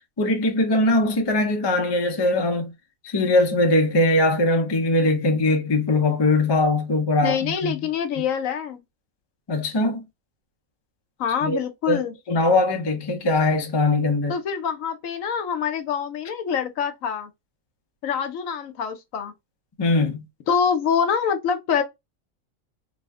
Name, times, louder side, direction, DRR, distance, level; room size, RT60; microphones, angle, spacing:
voice 1, 0.2-2.7 3.0-7.9 9.5-10.0 11.4-14.4 19.8-20.2, left 2 dB, 35° left, 0.4 m, -21 dB
voice 2, 7.2-8.8 11.2-12.1 14.3-17.3 18.0-19.3 20.5-21.8, left 7 dB, 75° left, 1.1 m, -25 dB
3.0 x 2.1 x 3.5 m
omnidirectional pair, 1.4 m